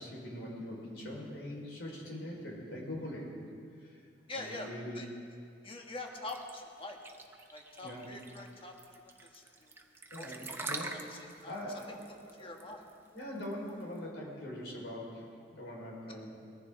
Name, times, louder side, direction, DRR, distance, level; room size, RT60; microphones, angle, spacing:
voice 1, 0.0-3.3 3.8-4.0 4.3-5.0 7.8-8.1 10.1-11.0 11.5-11.9 12.3-12.5 13.1-16.3, left 1 dB, 70° left, -3 dB, 4.8 m, -42 dB
voice 2, 4.3-4.7 4.9-5.1 5.6-7.0 7.5-8.7 9.0-9.7 10.2-10.3 10.7-10.8 11.2-11.6 11.9-12.8 16.1-16.2, left 2 dB, 30° left, 1 dB, 1.5 m, -45 dB
sound 1, 6.3-14.0, right 2 dB, 15° right, 0.9 m, -44 dB
21.5 x 14.5 x 3.8 m, 2.4 s
head